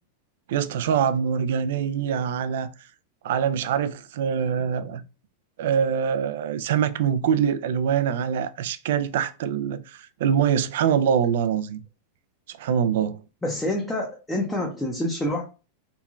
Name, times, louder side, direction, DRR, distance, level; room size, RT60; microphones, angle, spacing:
voice 1, 0.5-2.7 3.2-5.0 5.6-11.8 12.5-13.2, right 8 dB, 70° right, 0.3 m, -24 dB
voice 2, 13.4-15.4, left 1 dB, 10° left, 0.5 m, -27 dB
3.0 x 2.2 x 2.4 m
supercardioid pair, 145°, 0 cm